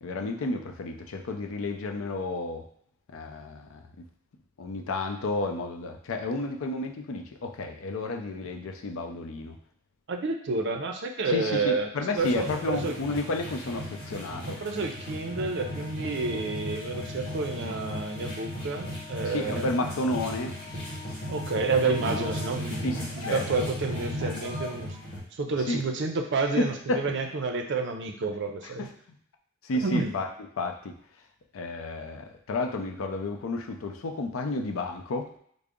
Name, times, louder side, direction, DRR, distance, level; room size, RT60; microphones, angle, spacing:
voice 1, 0.0-2.6 3.1-4.1 4.6-9.6 11.3-14.6 19.2-20.6 22.0-22.3 22.8-23.5 25.7-25.8 26.6-27.0 28.6-28.9 29.6-30.3 30.6-30.9 31.5-35.3, left 2 dB, 90° left, 4 dB, 0.5 m, -31 dB
voice 2, 10.1-13.0 14.5-19.8 21.3-25.0 25.3-28.9 29.7-30.1, right 3 dB, 60° right, 4 dB, 0.5 m, -30 dB
sound 1, 12.2-25.2, equal, 25° left, 1.4 m, -36 dB
3.7 x 2.0 x 3.5 m, 0.66 s
head